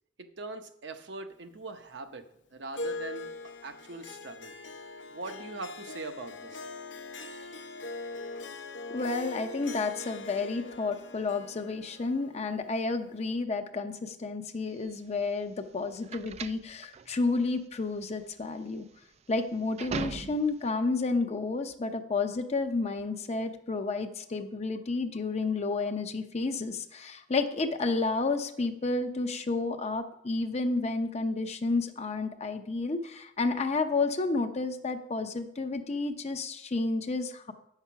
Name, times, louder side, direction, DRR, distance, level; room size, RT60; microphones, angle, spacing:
voice 1, 0.2-2.2 2.5-3.3 3.6-4.5 5.1-6.7, right 3 dB, 70° right, 7 dB, 0.8 m, -41 dB
Harp, 2.7-13.3, left 3 dB, 75° left, 0.7 m, -42 dB
voice 2, 8.9-18.8 19.3-37.5, left 3 dB, 35° left, 7 dB, 0.6 m, -31 dB
sound 1, 14.7-20.7, right 5 dB, 35° right, 0.3 m, -41 dB
8.3 x 5.8 x 5.7 m, 0.77 s
head